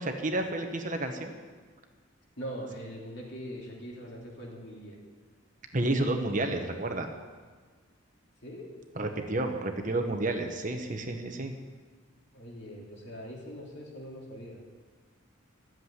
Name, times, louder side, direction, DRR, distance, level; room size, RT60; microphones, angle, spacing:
voice 1, 0.0-1.3 5.7-7.1 9.0-11.5, right 2 dB, 40° right, 5 dB, 1.2 m, -30 dB
voice 2, 2.4-5.0 8.4-8.7 12.3-14.6, equal, 55° left, -2 dB, 3.3 m, -42 dB
14.0 x 7.7 x 10.0 m, 1.5 s
head